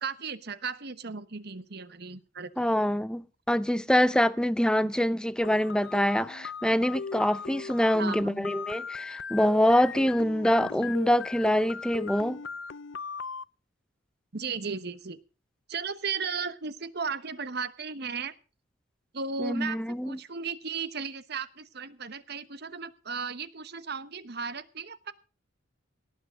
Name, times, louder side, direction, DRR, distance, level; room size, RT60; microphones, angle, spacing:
voice 1, 0.0-2.5 4.8-4.9 8.0-8.3 10.6-10.9 14.3-15.2 15.7-18.3 19.1-25.1, right 5 dB, 55° right, 1.1 m, -35 dB
voice 2, 2.6-12.4 19.4-20.2, equal, 5° left, 0.6 m, -25 dB
sound 1, 5.4-13.4, left 5 dB, 75° left, 0.6 m, -38 dB
18.0 x 7.3 x 6.4 m
head